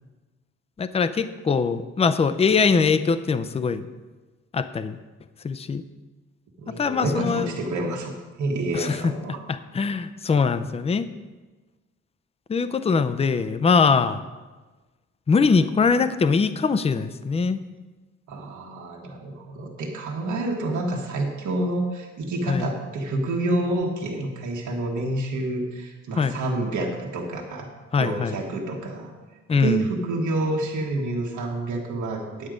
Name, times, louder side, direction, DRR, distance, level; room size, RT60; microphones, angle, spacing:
voice 1, 0.8-3.9 4.5-5.0 5.4-5.8 6.7-7.5 8.7-9.1 9.5-11.1 12.5-14.3 15.3-17.6 22.5-22.7 26.2-26.4 27.9-28.4 29.5-29.8, left 5 dB, 20° left, 12 dB, 0.5 m, -22 dB
voice 2, 6.6-9.4 18.3-27.7 28.0-29.1 29.5-32.5, right 2 dB, 70° right, -1 dB, 1.5 m, -28 dB
9.3 x 8.8 x 5.0 m, 1.2 s
cardioid pair, 110°, 30 cm